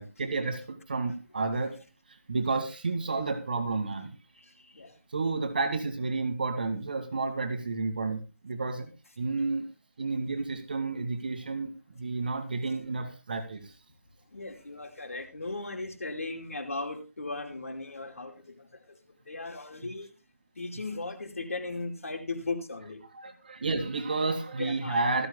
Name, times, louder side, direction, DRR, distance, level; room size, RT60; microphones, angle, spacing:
voice 1, 0.0-1.8 2.1-4.2 5.1-8.9 9.2-9.7 10.0-13.7 23.1-25.3, right 3 dB, 35° right, 8 dB, 1.8 m, -31 dB
voice 2, 4.3-5.0 14.3-19.0 19.3-20.1 20.6-23.0 24.6-25.1, left 3 dB, 60° left, 4 dB, 5.0 m, -37 dB
18.5 x 14.5 x 2.2 m, 0.29 s
figure-of-eight pair, 175°, 9 cm